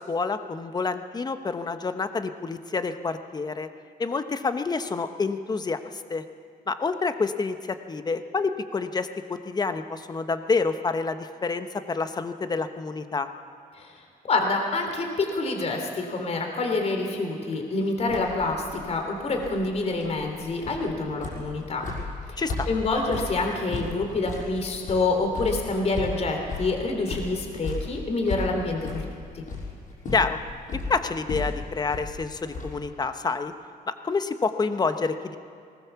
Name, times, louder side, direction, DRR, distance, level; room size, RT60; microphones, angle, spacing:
voice 1, 0.0-3.7 4.0-5.8 6.1-6.2 6.7-13.3 22.4-22.7 30.1-30.4 30.9-33.5 34.0-35.4, left 4 dB, 25° left, 9 dB, 1.1 m, -28 dB
voice 2, 14.2-21.8 22.3-29.0 29.3-29.4, left 3 dB, 45° left, 3 dB, 3.3 m, -27 dB
sound 1, 18.0-32.9, left 3 dB, 60° left, 6.2 m, -36 dB
19.5 x 19.5 x 7.1 m, 2.3 s
cardioid pair, 125°, 15 cm